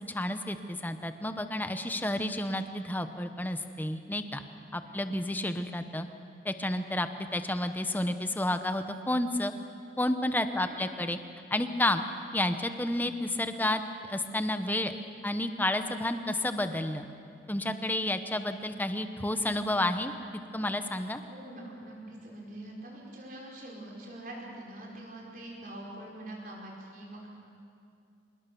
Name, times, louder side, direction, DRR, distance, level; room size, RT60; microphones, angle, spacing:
voice 1, 0.1-4.4 4.7-6.1 6.4-9.5 10.0-11.2 11.5-12.0 12.3-13.8 14.1-14.9 15.2-17.1 17.5-20.1 20.5-21.2, left 1 dB, 10° left, 9 dB, 0.9 m, -30 dB
voice 2, 4.9-5.2 10.4-10.9 21.3-27.3, right 1 dB, 50° right, -2 dB, 5.0 m, -44 dB
25.5 x 20.5 x 7.0 m, 2.5 s
head